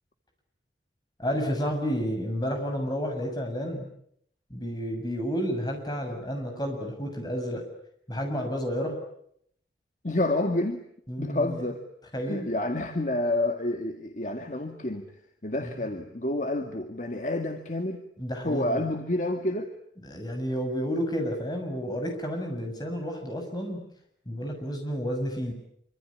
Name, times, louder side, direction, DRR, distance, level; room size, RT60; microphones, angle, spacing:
voice 1, 1.2-3.9 4.5-7.7 8.1-9.0 11.1-11.7 12.1-12.5 15.6-15.7 18.2-18.9 20.0-23.9 24.3-25.5, equal, 25° left, 3 dB, 6.9 m, -31 dB
voice 2, 10.0-10.8 11.2-11.8 12.3-15.1 15.4-18.0 18.4-19.7, left 1 dB, 45° left, 5 dB, 2.0 m, -29 dB
26.5 x 25.5 x 8.6 m, 0.70 s
head